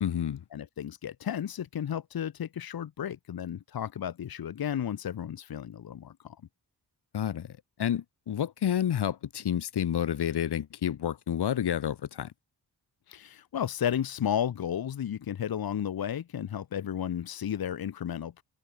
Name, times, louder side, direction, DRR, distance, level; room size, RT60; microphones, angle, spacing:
voice 1, 0.0-0.4 7.1-7.5 7.8-12.3, left 9 dB, 80° left, 1.5 m, -29 dB
voice 2, 0.5-6.4 13.1-18.4, left 9 dB, 60° left, 1.1 m, -33 dB
wide cardioid pair, 145°, 40 cm